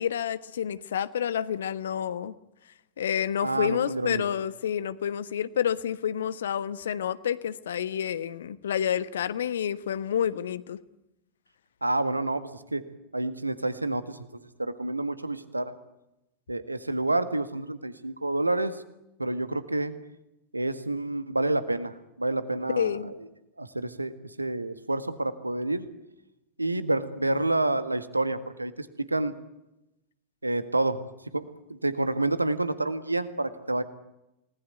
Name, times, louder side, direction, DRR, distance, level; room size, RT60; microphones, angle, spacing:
voice 1, 0.0-2.3 3.0-10.8 22.8-23.1, left 9 dB, 65° left, 15 dB, 1.3 m, -29 dB
voice 2, 3.4-4.2 11.8-12.8 13.1-15.7 16.5-18.8 19.2-19.9 20.5-23.3 23.6-25.8 26.6-29.3 30.4-31.0 31.3-33.8, right 2 dB, 85° right, 12 dB, 1.7 m, -29 dB
29.0 x 19.5 x 9.3 m, 0.90 s
figure-of-eight pair, 90°, 0 cm